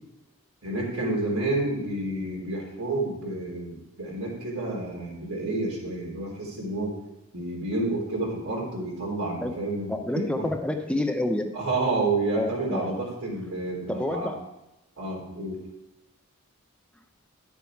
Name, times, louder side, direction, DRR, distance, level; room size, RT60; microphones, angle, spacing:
voice 1, 0.6-7.0 7.3-10.5 11.5-14.3 15.0-15.6, right 2 dB, 85° right, -2 dB, 3.6 m, -29 dB
voice 2, 9.9-11.5 12.3-13.0 13.9-14.3, left 1 dB, 5° left, 4 dB, 0.5 m, -28 dB
11.0 x 7.1 x 4.6 m, 0.96 s
head